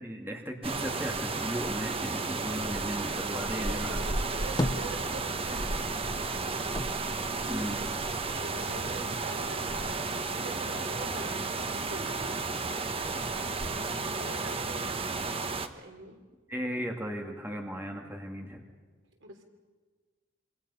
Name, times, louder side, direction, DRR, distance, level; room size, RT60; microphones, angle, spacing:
voice 1, 0.0-4.0 7.4-7.9 16.5-18.6, equal, 10° right, 2 dB, 2.3 m, -36 dB
sound 1, 0.6-15.7, right 3 dB, 30° right, 1.2 m, -33 dB
voice 2, 2.8-7.2 8.3-12.3 14.1-15.3 15.8-16.2 19.2-19.4, right 2 dB, 75° right, 4 dB, 3.5 m, -45 dB
sound 2, 3.3-14.9, equal, 50° right, 5.5 m, -52 dB
sound 3, 4.6-5.6 5.9-8.3 8.7-9.6, left 1 dB, 20° left, 0.7 m, -37 dB
27.0 x 26.0 x 5.8 m, 1.4 s
head